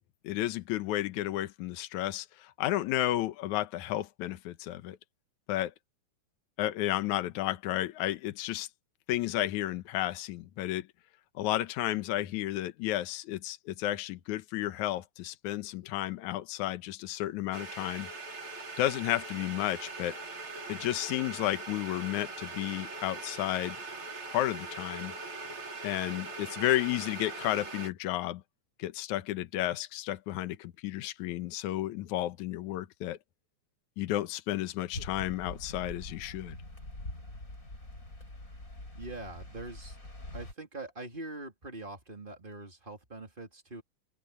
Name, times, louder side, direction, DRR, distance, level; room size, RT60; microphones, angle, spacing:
voice 1, 0.2-5.0 5.5-5.7 6.6-8.7 9.1-10.9 11.4-18.1 18.8-20.2 20.7-23.8 24.3-25.1 25.8-28.4 28.8-33.2 34.0-36.6, left 14 dB, 75° left, 2.3 m, -32 dB
sound 1, 17.5-27.9, right 3 dB, 40° right, 4.3 m, -41 dB
sound 2, 34.9-40.5, left 1 dB, 25° left, 7.2 m, -44 dB
voice 2, 38.9-40.0 40.3-43.8, right 2 dB, 15° right, 3.2 m, -43 dB
omnidirectional pair, 3.6 m